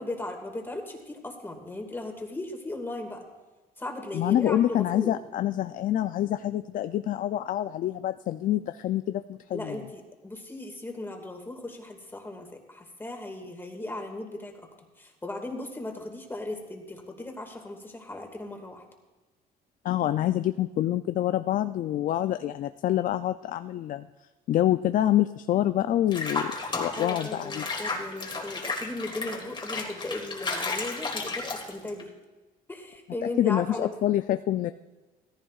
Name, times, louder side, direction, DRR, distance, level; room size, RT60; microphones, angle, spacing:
voice 1, 0.0-3.2 3.8-5.1 9.5-14.6 15.0-18.8 27.0-32.1 32.7-33.9, left 2 dB, 15° left, 3 dB, 2.0 m, -37 dB
voice 2, 4.1-9.8 19.8-24.1 24.5-26.5 26.8-27.6 33.4-34.7, left 12 dB, 50° left, 10 dB, 0.4 m, -26 dB
Water / Bathtub (filling or washing), 26.1-32.0, left 3 dB, 30° left, 1.9 m, -33 dB
16.5 x 14.5 x 2.4 m, 1.2 s
cardioid pair, 110°, 17 cm